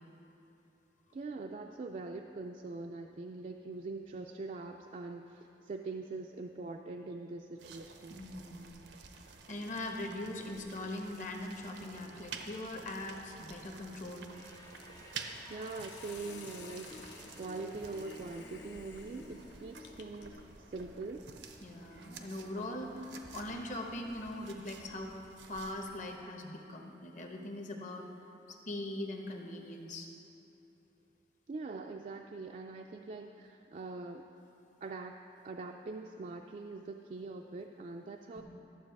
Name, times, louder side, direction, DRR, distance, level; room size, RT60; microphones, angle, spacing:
voice 1, 1.1-8.2 15.5-21.3 31.5-34.2 34.8-35.2 35.4-38.4, right 3 dB, 45° right, 2 dB, 0.3 m, -43 dB
sound 1, 7.6-26.2, right 5 dB, 85° right, 0.7 m, -51 dB
voice 2, 8.1-8.7 9.5-14.3 21.6-25.1 25.5-28.1 28.5-30.1 38.3-38.4, left 1 dB, 45° left, 2 dB, 1.0 m, -41 dB
sound 2, 14.3-25.1, left 2 dB, 20° left, 0.6 m, -56 dB
Hiss, 14.6-20.4, left 6 dB, 85° left, 0.7 m, -55 dB
12.0 x 7.1 x 4.7 m, 3.0 s
head